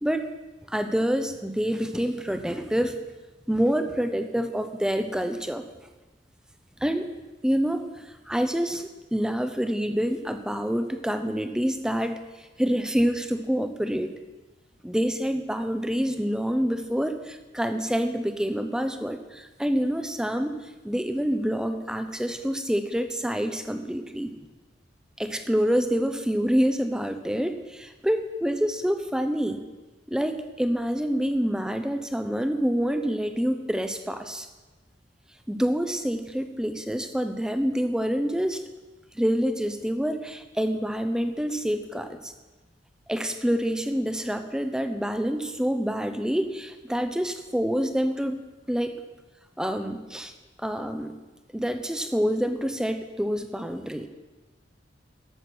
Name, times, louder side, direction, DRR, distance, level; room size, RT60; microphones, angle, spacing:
voice 1, 0.7-2.9 3.5-5.6 6.8-7.1 7.4-12.2 12.6-14.1 14.8-20.5 20.8-24.4 25.2-29.6 30.1-34.5 35.5-38.6 39.1-42.3 43.1-48.4 48.7-48.9 49.6-50.3 50.6-51.1 51.5-54.1, equal, 5° right, 7 dB, 0.6 m, -27 dB
13.5 x 6.1 x 6.0 m, 1.2 s
head